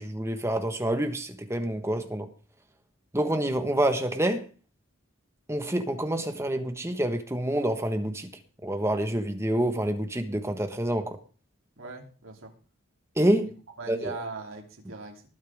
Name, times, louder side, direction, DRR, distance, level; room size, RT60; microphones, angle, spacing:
voice 1, 0.0-2.3 3.1-4.4 5.5-8.3 8.6-11.1 13.2-13.5 13.9-14.2, right 1 dB, 15° right, 1.4 m, -27 dB
voice 2, 11.8-12.5 13.8-15.3, right 3 dB, 75° right, 3.1 m, -40 dB
20.0 x 8.8 x 3.6 m
head